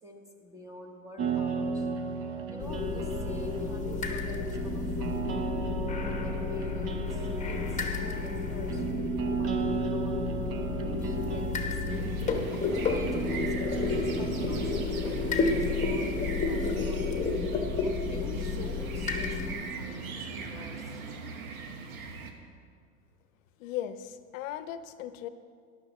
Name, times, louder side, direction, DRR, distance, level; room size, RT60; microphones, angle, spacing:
voice 1, 0.0-1.9 2.5-5.7 6.2-8.8 9.2-10.2 10.8-12.2 12.5-17.2 17.8-21.0, equal, 10° right, 1 dB, 1.0 m, -47 dB
sound 1, 1.2-14.9, right 5 dB, 35° right, 0.9 m, -35 dB
sound 2, 2.6-19.5, left 4 dB, 15° left, 1.1 m, -31 dB
sound 3, 11.9-22.3, right 4 dB, 90° right, 1.3 m, -40 dB
voice 2, 23.6-25.3, left 11 dB, 65° left, 12 dB, 0.8 m, -37 dB
14.0 x 11.0 x 3.1 m, 2.1 s
hypercardioid pair, 115°, 41 cm